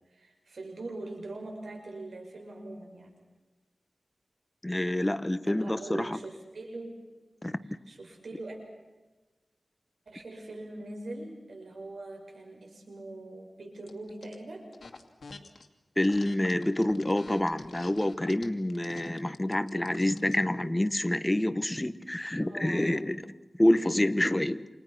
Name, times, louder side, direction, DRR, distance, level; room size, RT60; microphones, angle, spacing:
voice 1, 0.1-3.1 5.5-7.1 7.6-8.6 10.1-14.7 22.4-23.0, right 2 dB, 85° right, 7.0 m, -42 dB
voice 2, 4.6-6.2 7.4-7.6 16.0-23.2 23.6-24.7, left 1 dB, 15° left, 1.2 m, -27 dB
sound 1, 13.9-14.3 14.7-15.7 16.0-20.4, left 4 dB, 80° left, 2.5 m, -48 dB
29.5 x 27.5 x 6.1 m
wide cardioid pair, 75°, 0 cm